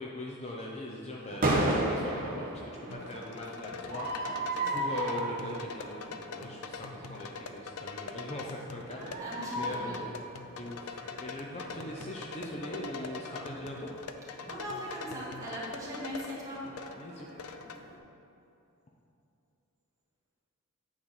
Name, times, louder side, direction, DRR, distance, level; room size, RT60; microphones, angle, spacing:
voice 1, 0.0-9.2 9.6-10.1 10.5-13.9 17.0-17.3, left 1 dB, 30° left, -2 dB, 0.6 m, -41 dB
sound 1, 1.2-18.0, right 1 dB, 40° right, 1.1 m, -37 dB
sound 2, 2.9-17.8, left 5 dB, 90° left, 0.5 m, -44 dB
voice 2, 9.2-10.0 14.5-16.7, equal, 15° right, -6 dB, 1.8 m, -40 dB
8.8 x 4.1 x 6.5 m, 2.7 s
head